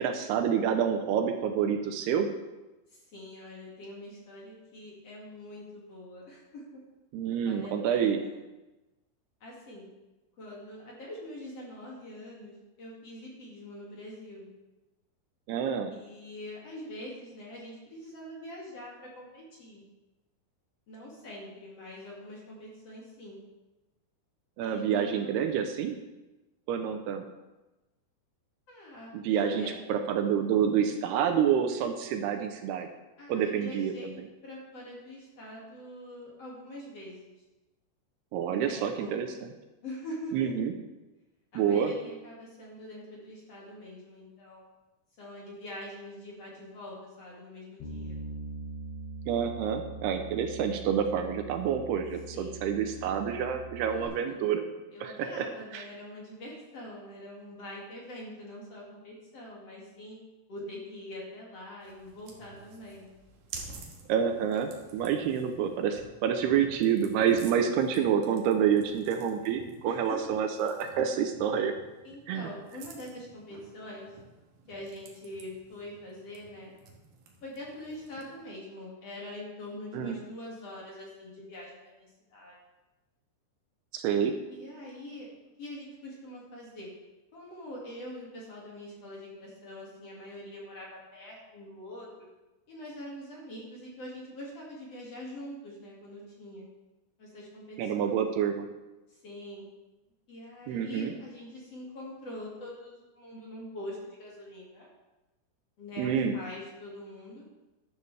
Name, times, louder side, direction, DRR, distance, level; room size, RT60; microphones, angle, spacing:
voice 1, 0.0-2.3 7.1-8.2 15.5-15.9 24.6-26.0 26.7-27.2 29.1-29.6 29.9-32.9 33.3-34.3 38.3-39.5 40.3-40.7 41.6-42.0 49.3-54.6 55.0-55.5 55.7-55.9 64.1-71.7 72.3-72.5 79.9-80.2 83.9-84.4 97.8-98.7 100.7-101.1 106.0-106.4, right 8 dB, 80° right, 6 dB, 2.7 m, -28 dB
voice 2, 2.9-6.6 7.3-8.4 9.4-9.9 10.4-14.5 15.9-19.8 20.9-23.4 24.6-25.6 28.7-29.8 33.2-37.3 38.5-39.4 39.8-40.5 41.5-44.6 45.2-48.2 52.3-52.7 53.9-54.5 54.9-60.2 60.5-63.1 67.5-67.7 69.8-70.2 72.0-74.1 74.7-76.7 77.4-82.6 84.5-85.3 85.6-86.9 87.3-92.1 92.7-96.7 97.2-98.2 99.2-99.7 100.3-104.9 105.8-107.4, left 1 dB, 45° left, -4 dB, 2.8 m, -44 dB
Bass guitar, 47.8-54.1, right 2 dB, 75° left, 3.7 m, -42 dB
sound 1, 61.8-78.4, right 4 dB, 65° right, 2.9 m, -51 dB
12.0 x 12.0 x 3.4 m, 1.1 s
omnidirectional pair, 4.9 m